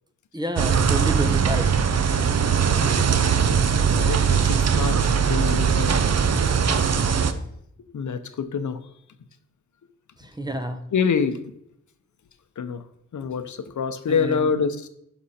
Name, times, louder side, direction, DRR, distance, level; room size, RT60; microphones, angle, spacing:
voice 1, 0.3-1.7 10.2-10.9 14.1-14.5, right 1 dB, 15° right, 8 dB, 0.8 m, -29 dB
sound 1, 0.6-7.3, right 6 dB, 55° right, 0.7 m, -20 dB
voice 2, 4.0-5.9 7.9-8.8 10.9-11.4 12.6-12.8 13.1-14.9, left 6 dB, 75° left, 10 dB, 0.8 m, -26 dB
11.5 x 5.3 x 4.2 m, 0.75 s
wide cardioid pair, 140°, 30 cm